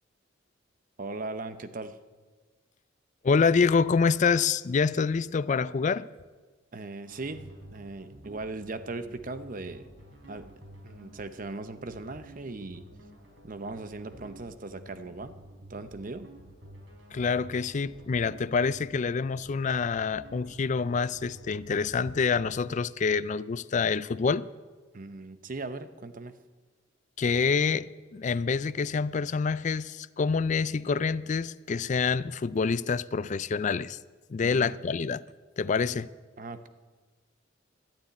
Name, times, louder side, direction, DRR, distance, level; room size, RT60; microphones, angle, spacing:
voice 1, 1.0-2.0 6.7-9.9 10.3-10.5 10.8-12.8 13.4-15.3 15.7-16.3 24.9-26.3 34.4-34.8 36.4-36.7, right 3 dB, 45° right, 0.8 m, -38 dB
voice 2, 3.2-6.1 17.1-24.5 27.2-27.9 28.1-34.0 34.3-35.2 35.6-36.1, left 5 dB, 40° left, 0.4 m, -26 dB
sound 1, 7.1-22.5, right 1 dB, 85° right, 4.7 m, -51 dB
12.0 x 10.0 x 9.4 m
head